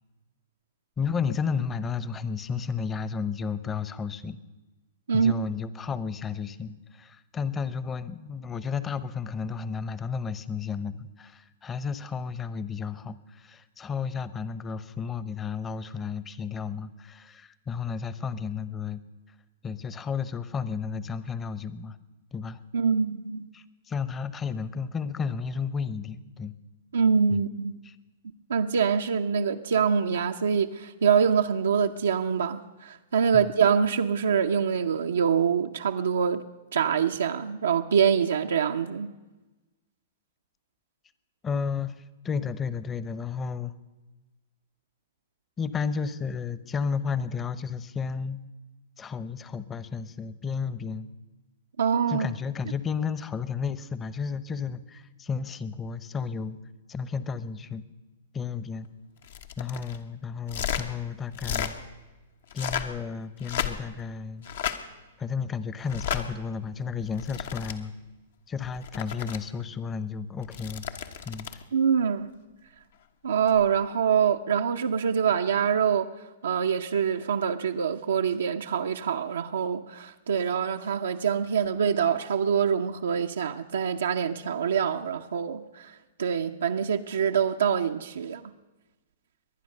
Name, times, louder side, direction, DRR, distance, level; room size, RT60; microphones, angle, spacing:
voice 1, 1.0-4.4 5.1-19.0 19.6-22.0 22.3-22.6 23.5-26.5 27.3-27.4 27.8-28.0 33.3-33.5 41.4-43.7 45.6-48.4 49.0-51.1 52.1-56.6 56.9-57.8 58.3-58.9 59.6-61.7 62.5-64.5 65.2-67.9 68.5-70.9 71.2-71.6, left 6 dB, 20° left, 0.8 m, -32 dB
voice 2, 22.7-23.5 26.9-27.8 28.5-36.4 36.7-39.1 51.8-52.3 71.7-72.3 73.2-76.1 76.4-88.4, right 7 dB, 80° right, 0.7 m, -25 dB
sound 1, 59.2-60.0 60.5-60.9 61.3-61.7 62.4-63.0 63.4-64.0 64.4-64.8 65.9-66.2 67.0-67.7 68.6-69.4 70.4-71.6 73.5-73.7, left 8 dB, 70° left, 1.3 m, -33 dB
23.0 x 9.5 x 6.6 m
hypercardioid pair, 120°, 0 cm